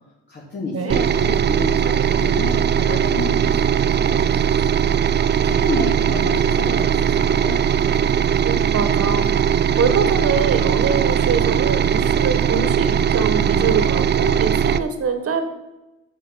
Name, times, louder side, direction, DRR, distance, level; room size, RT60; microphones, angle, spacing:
voice 1, 0.3-4.9 5.4-7.6, left 3 dB, 35° left, -4 dB, 2.7 m, -30 dB
sound 1, 0.9-14.8, right 8 dB, 35° right, 0.5 m, -19 dB
voice 2, 8.4-9.3 9.8-15.4, right 5 dB, 50° right, 8 dB, 1.6 m, -24 dB
10.0 x 7.5 x 5.7 m, 0.99 s
cardioid pair, 90°, 30 cm